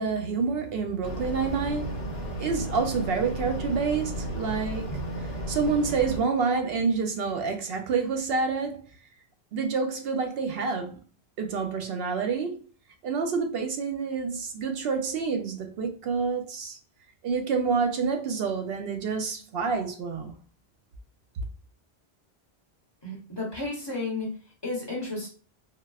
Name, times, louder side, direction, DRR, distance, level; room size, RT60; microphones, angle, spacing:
voice 1, 0.0-8.9 9.5-11.0 11.4-12.6 13.0-16.8 17.2-20.3, right 5 dB, 70° right, 0.8 m, -28 dB
sound 1, 1.0-6.2, right 1 dB, 70° left, 1.0 m, -34 dB
voice 2, 23.0-24.3 24.6-25.3, left 2 dB, 25° left, 0.9 m, -32 dB
4.0 x 2.0 x 2.3 m
omnidirectional pair, 1.1 m